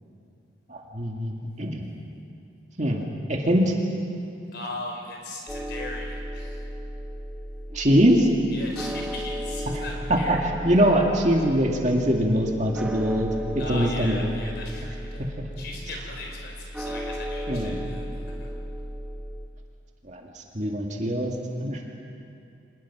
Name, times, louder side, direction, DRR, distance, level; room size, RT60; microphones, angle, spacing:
voice 1, 0.7-1.9 2.8-3.0 3.3-3.7 7.7-8.3 10.1-10.4 10.6-14.3 15.4-15.5 17.5-17.9 20.0-21.8, equal, 40° right, 1 dB, 2.2 m, -23 dB
voice 2, 4.5-6.6 8.5-10.4 13.6-15.3 15.6-18.5, left 2 dB, 55° left, 0 dB, 4.9 m, -38 dB
sound 1, 5.5-19.5, equal, 5° right, 1.0 m, -35 dB
26.0 x 20.0 x 6.2 m, 2.7 s
head